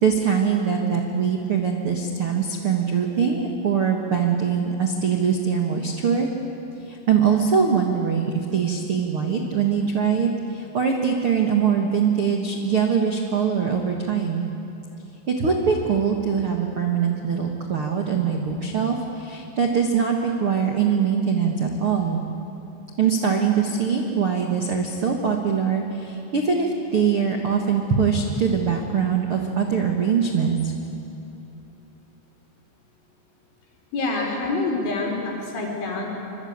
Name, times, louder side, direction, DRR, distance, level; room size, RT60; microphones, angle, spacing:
voice 1, 0.0-6.3 6.8-14.5 15.3-22.2 23.0-30.7, right 6 dB, 85° right, 2 dB, 1.2 m, -22 dB
voice 2, 33.9-36.1, left 3 dB, 85° left, 0 dB, 6.7 m, -26 dB
25.5 x 23.5 x 8.8 m, 2.8 s
omnidirectional pair, 5.3 m